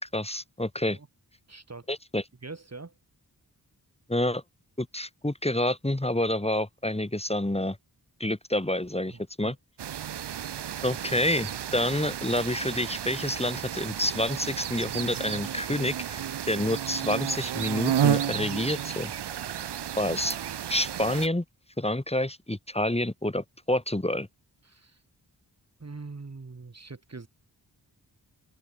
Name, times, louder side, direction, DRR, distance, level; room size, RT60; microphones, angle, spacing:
voice 1, 0.0-1.0 1.9-2.2 4.1-4.4 4.8-7.8 8.2-9.6 10.8-19.1 20.0-20.4 20.7-21.4 21.8-24.3, left 1 dB, 15° left, 2.0 m, -28 dB
voice 2, 1.5-1.9 2.4-2.9 9.1-9.5 24.6-25.0 25.8-27.3, right 3 dB, 40° right, 1.6 m, -43 dB
sound 1, 9.8-21.3, right 10 dB, 75° right, 0.7 m, -32 dB
open air
wide cardioid pair, 50°, 42 cm